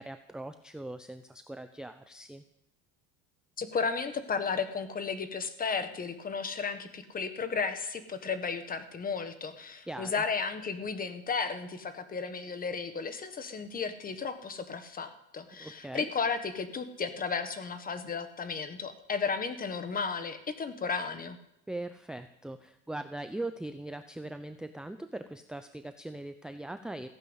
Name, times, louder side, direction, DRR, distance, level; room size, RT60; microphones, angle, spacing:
voice 1, 0.0-2.4 9.9-10.2 15.5-16.1 21.7-27.1, right 2 dB, ahead, 8 dB, 0.6 m, -40 dB
voice 2, 3.6-21.4, left 5 dB, 25° left, 10 dB, 1.5 m, -34 dB
15.5 x 10.5 x 8.1 m, 0.80 s
cardioid pair, 130°, 35 cm